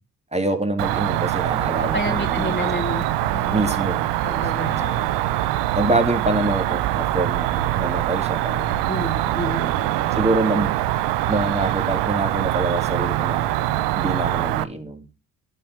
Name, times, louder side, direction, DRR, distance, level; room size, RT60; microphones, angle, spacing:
voice 1, 0.3-2.7 2.9-3.1 3.5-4.7 5.7-9.0 10.1-10.7 11.3-13.5 13.9-15.1, right 2 dB, 15° right, 2.6 m, -26 dB
Cricket, 0.8-14.6, right 14 dB, 85° right, 0.7 m, -23 dB
voice 2, 1.8-3.7 4.2-5.1 8.9-10.0, left 2 dB, 20° left, 2.2 m, -30 dB
12.5 x 5.5 x 5.9 m
hypercardioid pair, 50°, 41 cm